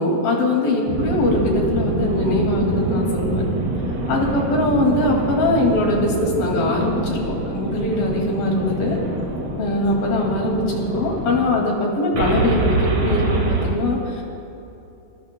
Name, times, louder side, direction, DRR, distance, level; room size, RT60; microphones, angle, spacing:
voice 1, 0.0-3.4 4.1-9.0 9.6-14.2, left 1 dB, 65° left, -1 dB, 4.0 m, -21 dB
sound 1, 0.9-11.5 12.1-13.7, right 2 dB, 40° right, 3.0 m, -25 dB
25.5 x 21.5 x 2.3 m, 2.9 s
omnidirectional pair, 4.6 m